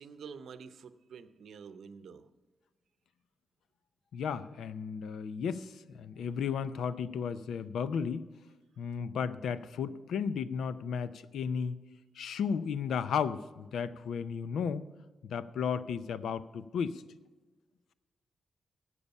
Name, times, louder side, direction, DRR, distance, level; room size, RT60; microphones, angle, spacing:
voice 1, 0.0-2.3, right 6 dB, 75° right, 12 dB, 0.7 m, -48 dB
voice 2, 4.1-8.3 8.8-11.8 12.2-14.8 15.3-17.0, left 6 dB, 90° left, 15 dB, 0.5 m, -34 dB
14.0 x 8.5 x 5.5 m, 1.3 s
wide cardioid pair, 140°, 0 cm